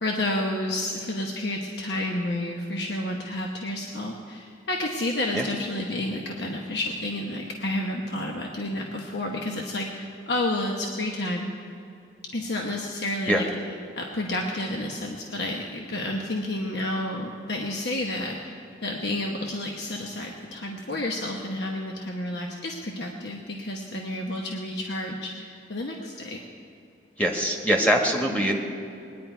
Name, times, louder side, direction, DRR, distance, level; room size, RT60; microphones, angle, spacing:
voice 1, 0.0-11.5 12.3-13.5 14.0-26.4 28.3-28.5, left 1 dB, 75° left, 0 dB, 1.1 m, -30 dB
voice 2, 27.2-28.6, equal, 10° left, 1 dB, 1.4 m, -22 dB
20.0 x 10.5 x 4.6 m, 2.6 s
head